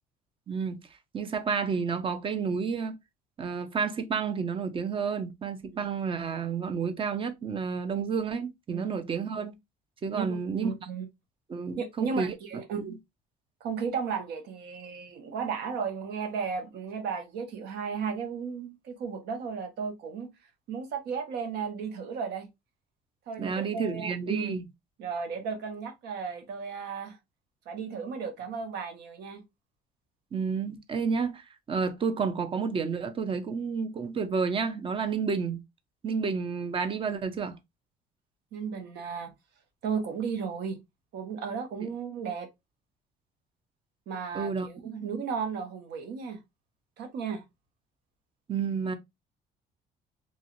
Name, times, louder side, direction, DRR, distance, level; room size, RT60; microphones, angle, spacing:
voice 1, 0.5-0.8 1.1-3.0 3.4-9.5 10.0-10.7 11.5-12.3 12.8-12.9 23.4-24.6 30.3-35.6 36.0-37.6 41.8-41.9 44.3-44.7 48.5-48.9, right 5 dB, 30° right, 0.6 m, -30 dB
voice 2, 10.6-11.1 11.8-12.9 13.6-20.3 20.7-22.5 23.3-24.5 25.0-27.2 27.7-29.4 38.5-39.3 39.8-40.8 41.1-42.5 44.1-46.4 47.0-47.4, right 6 dB, 80° right, 0.9 m, -34 dB
3.1 x 2.4 x 2.8 m
cardioid pair, 110°, 17 cm